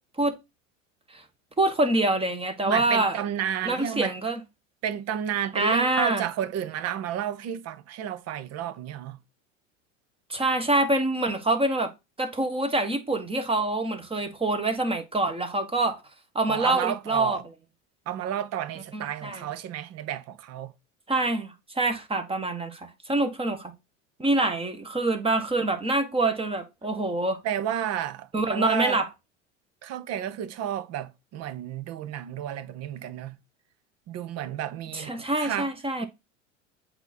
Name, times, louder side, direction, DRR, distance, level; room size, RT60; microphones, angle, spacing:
voice 1, 1.6-3.2 3.6-4.4 5.5-6.3 10.3-11.9 12.2-16.0 16.3-17.4 18.9-19.5 21.1-23.7 24.2-27.4 28.3-29.1 34.9-36.1, right 2 dB, 15° right, 1.3 m, -25 dB
voice 2, 2.6-4.2 4.8-9.2 16.5-17.4 18.1-20.7 27.4-29.0 29.8-33.4 34.1-35.7, right 10 dB, 40° right, 0.9 m, -31 dB
7.9 x 2.9 x 4.2 m
hypercardioid pair, 85°, 39 cm